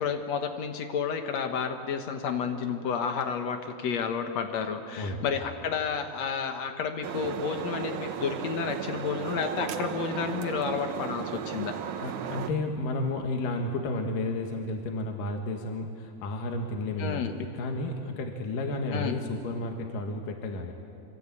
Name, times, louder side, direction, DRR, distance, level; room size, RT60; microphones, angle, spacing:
voice 1, 0.0-11.8 17.0-17.3 18.9-19.1, left 6 dB, 75° left, 6 dB, 1.5 m, -31 dB
voice 2, 5.0-5.3 12.0-20.7, left 2 dB, 60° left, 3 dB, 2.8 m, -32 dB
sound 1, 7.0-12.5, right 8 dB, 80° right, 1.7 m, -35 dB
26.5 x 25.5 x 8.6 m, 2.5 s
omnidirectional pair, 5.0 m